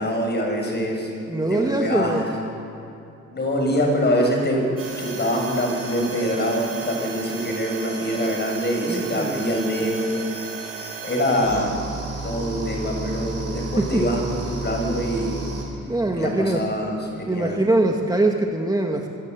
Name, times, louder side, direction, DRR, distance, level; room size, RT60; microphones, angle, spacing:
voice 1, 0.0-1.1 1.5-2.3 3.3-4.7 5.0-10.3 10.5-10.7 11.0-11.8 12.2-15.3 16.1-17.6, equal, 35° left, 1 dB, 7.3 m, -24 dB
voice 2, 1.3-2.2 8.9-9.4 13.8-14.0 15.9-16.6 17.3-19.2, right 2 dB, 15° right, 2 dB, 2.0 m, -22 dB
sound 1, 4.8-15.6, right 3 dB, 55° right, 7.3 m, -33 dB
26.0 x 15.5 x 8.4 m, 2.7 s
cardioid pair, 90°, 30 cm